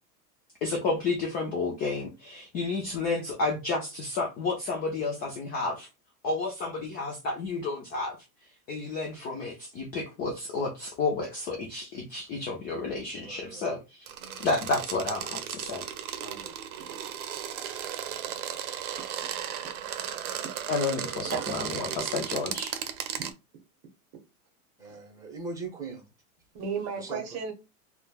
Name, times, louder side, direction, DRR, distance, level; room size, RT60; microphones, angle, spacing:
voice 1, 0.6-5.9 6.2-8.2 8.7-13.8 14.4-15.8 20.7-22.7, left 3 dB, 25° left, 0.3 m, -31 dB
voice 2, 13.2-13.6 14.2-14.5 16.2-16.5 18.3-18.4 24.8-26.0 26.9-27.2, right 3 dB, 10° right, 0.8 m, -41 dB
sound 1, 14.1-23.3, right 9 dB, 75° right, 0.7 m, -35 dB
voice 3, 26.5-27.5, right 6 dB, 35° right, 0.8 m, -34 dB
3.0 x 2.2 x 2.2 m
hypercardioid pair, 120°, 43 cm